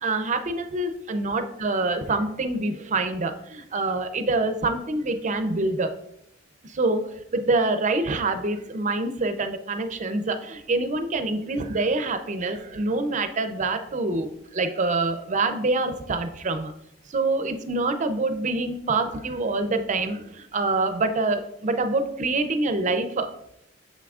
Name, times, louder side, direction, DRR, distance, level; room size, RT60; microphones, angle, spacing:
voice 1, 0.0-5.9 6.6-16.7 17.1-23.3, right 3 dB, 40° right, 9 dB, 0.5 m, -26 dB
6.7 x 5.9 x 2.4 m, 0.77 s
head